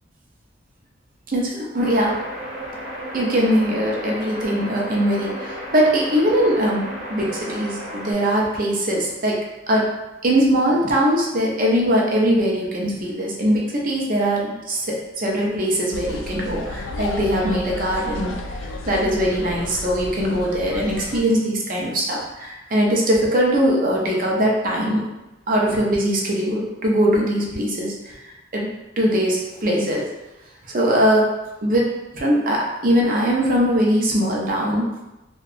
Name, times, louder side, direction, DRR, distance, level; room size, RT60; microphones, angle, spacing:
voice 1, 1.3-2.1 3.1-9.4 9.7-9.9 10.2-25.0 25.5-28.2 28.5-28.7 29.0-30.1 30.7-31.3 31.6-34.9, equal, 45° right, -2 dB, 0.5 m, -21 dB
sound 1, 1.8-8.1, equal, 85° right, 0.8 m, -33 dB
sound 2, 15.9-21.2, left 2 dB, 85° left, 0.3 m, -32 dB
2.8 x 2.2 x 2.4 m, 0.99 s
head